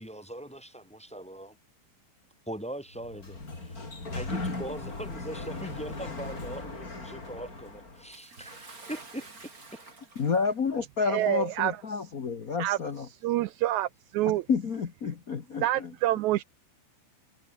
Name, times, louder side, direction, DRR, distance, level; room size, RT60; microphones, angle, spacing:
voice 1, 0.0-1.6 2.5-3.8 4.1-9.3, right 1 dB, ahead, 2.5 m, -41 dB
Sliding door, 2.9-8.1, left 3 dB, 25° left, 4.8 m, -38 dB
Bathtub (filling or washing) / Splash splatter, 8.1-10.7 11.6-11.7 12.7-12.8, right 3 dB, 25° right, 4.3 m, -49 dB
voice 2, 10.1-13.1 14.3-15.9, left 5 dB, 80° left, 0.7 m, -30 dB
voice 3, 11.1-11.7 12.6-12.8 13.2-14.4 15.6-16.4, right 15 dB, 85° right, 1.7 m, -27 dB
omnidirectional pair, 3.9 m